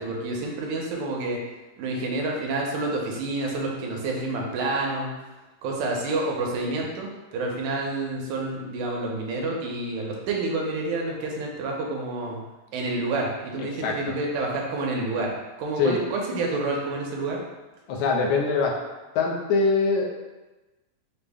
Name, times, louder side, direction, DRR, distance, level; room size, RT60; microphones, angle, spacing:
voice 1, 0.0-1.4 1.8-5.1 5.6-12.4 12.7-15.3 15.6-17.4, right 2 dB, 80° right, -1 dB, 2.1 m, -28 dB
voice 2, 13.8-14.1 15.8-16.0 17.9-18.7 19.2-20.1, left 4 dB, 80° left, 0 dB, 1.8 m, -23 dB
5.7 x 2.0 x 3.4 m, 1.1 s
omnidirectional pair, 3.6 m